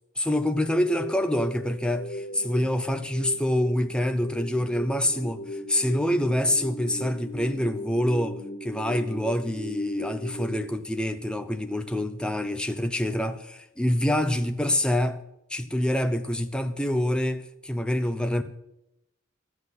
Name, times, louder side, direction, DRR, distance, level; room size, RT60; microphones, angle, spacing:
voice 1, 0.2-15.2 15.5-18.4, left 1 dB, 5° left, 0.7 m, -26 dB
sound 1, 0.6-10.6, equal, 45° left, 2.2 m, -37 dB
12.5 x 7.8 x 7.9 m
head